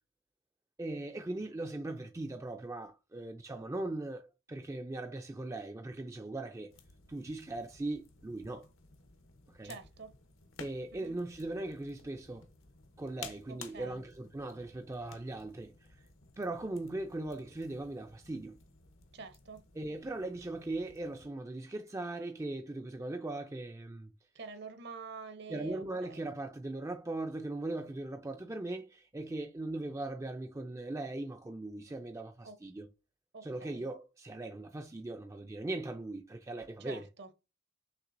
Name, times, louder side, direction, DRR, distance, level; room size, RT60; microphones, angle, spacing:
voice 1, 0.8-6.8 7.1-8.7 9.5-9.7 10.6-12.5 13.0-15.7 16.4-18.5 19.8-24.1 25.5-32.9 33.4-37.0, right 2 dB, 15° right, 0.3 m, -39 dB
sound 1, 6.7-21.3, left 5 dB, 75° left, 0.9 m, -55 dB
voice 2, 9.6-10.1 10.9-11.2 13.5-14.0 19.1-19.6 24.3-26.2 32.4-32.6 33.3-33.9 36.8-37.3, right 4 dB, 55° right, 0.8 m, -47 dB
5.9 x 3.2 x 2.6 m
head